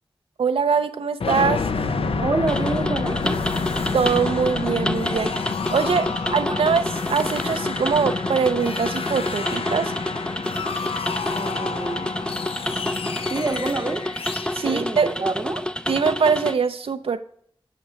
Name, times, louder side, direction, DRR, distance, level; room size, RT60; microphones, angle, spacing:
voice 1, 0.4-1.7 3.9-5.4 5.7-9.9 14.5-15.2 15.9-17.2, right 5 dB, 90° right, 0.4 m, -23 dB
sound 1, 1.2-15.9, left 5 dB, 90° left, 0.4 m, -29 dB
Bass guitar, 1.7-7.9, right 2 dB, 70° left, 1.7 m, -38 dB
voice 2, 2.2-3.4 11.3-12.2 13.3-14.1 14.6-15.7, right 3 dB, 40° right, 0.6 m, -27 dB
sound 2, 2.5-16.5, left 1 dB, 10° left, 0.4 m, -29 dB
8.3 x 5.9 x 2.7 m
wide cardioid pair, 55°, 9 cm